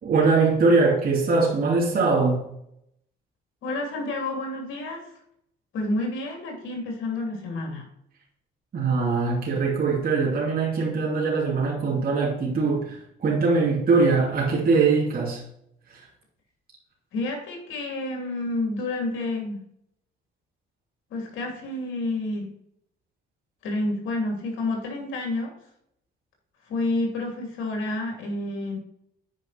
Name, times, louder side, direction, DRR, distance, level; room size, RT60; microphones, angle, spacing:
voice 1, 0.0-2.4 8.7-15.4 15.9-16.1, right 4 dB, 50° right, -4 dB, 2.7 m, -22 dB
voice 2, 3.6-5.1 5.7-7.9 17.1-19.6 21.1-22.5 23.6-25.5 26.6-28.8, left 2 dB, 80° left, 1 dB, 3.0 m, -29 dB
9.1 x 5.1 x 4.2 m, 0.75 s
cardioid pair, 90°, 20 cm